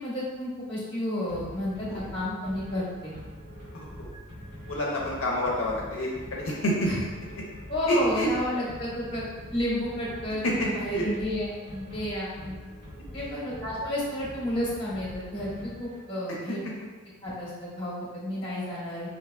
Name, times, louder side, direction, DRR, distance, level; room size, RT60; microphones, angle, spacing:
voice 1, 0.0-3.2 6.8-7.0 7.7-9.2 9.5-12.6 13.1-16.6 17.2-19.1, left 1 dB, 25° left, -6 dB, 1.0 m, -31 dB
Special ringtone, 1.3-16.3, equal, 85° right, 1.5 m, -44 dB
voice 2, 3.7-4.1 4.7-7.1 7.9-8.3 10.4-11.0 13.2-13.4, equal, 65° left, -3 dB, 0.6 m, -28 dB
4.6 x 2.8 x 2.3 m, 1.3 s
head